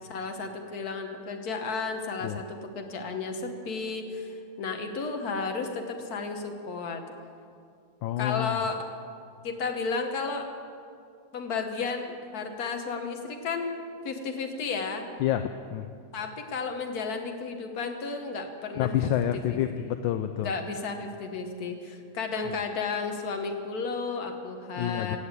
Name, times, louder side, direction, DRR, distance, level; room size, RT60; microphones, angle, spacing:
voice 1, 0.1-7.0 8.2-8.9 9.4-10.5 11.3-13.7 14.0-15.0 16.1-18.9 19.5-19.6 20.4-25.2, left 4 dB, 55° left, 4 dB, 1.6 m, -33 dB
voice 2, 8.0-8.6 15.2-15.9 18.8-20.5 24.8-25.2, left 11 dB, 75° left, 9 dB, 1.2 m, -28 dB
17.0 x 7.2 x 8.1 m, 2.4 s
omnidirectional pair, 2.2 m